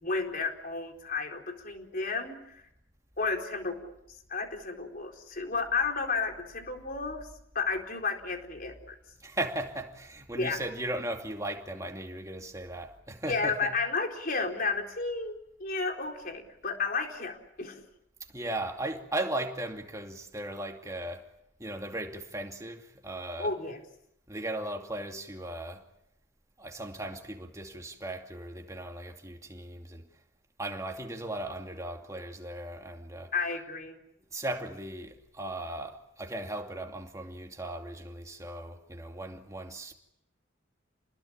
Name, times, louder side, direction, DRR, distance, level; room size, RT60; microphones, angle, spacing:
voice 1, 0.0-2.6 3.2-3.9 4.3-7.3 7.5-8.9 10.4-10.6 13.3-17.8 23.4-23.8 33.3-34.0, left 4 dB, 45° left, 4.2 m, -32 dB
voice 2, 9.2-13.7 18.3-21.3 21.6-23.6 24.3-25.8 26.6-30.1 30.6-33.5 34.3-39.9, right 1 dB, 15° right, 2.6 m, -37 dB
29.0 x 21.0 x 8.7 m
head